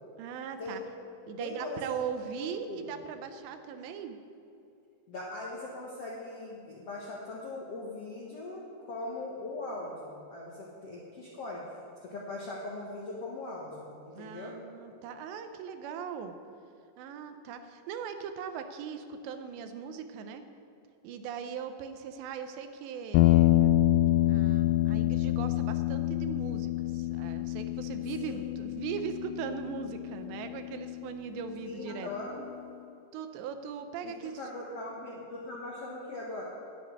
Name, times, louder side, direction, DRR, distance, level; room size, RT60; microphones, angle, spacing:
voice 1, 0.2-0.8 1.3-4.2 14.1-16.4 17.0-20.4 21.0-23.7 24.3-32.1 33.1-34.4, right 7 dB, 80° right, 8 dB, 3.0 m, -39 dB
voice 2, 1.4-1.8 2.2-2.4 2.6-2.9 5.1-11.6 12.0-14.6 28.2-28.4 31.6-32.4 34.0-36.4, left 2 dB, 65° left, -4 dB, 1.5 m, -40 dB
sound 1, 23.1-31.5, left 15 dB, 85° left, 2.3 m, -27 dB
10.5 x 8.0 x 9.4 m, 2.7 s
omnidirectional pair, 5.1 m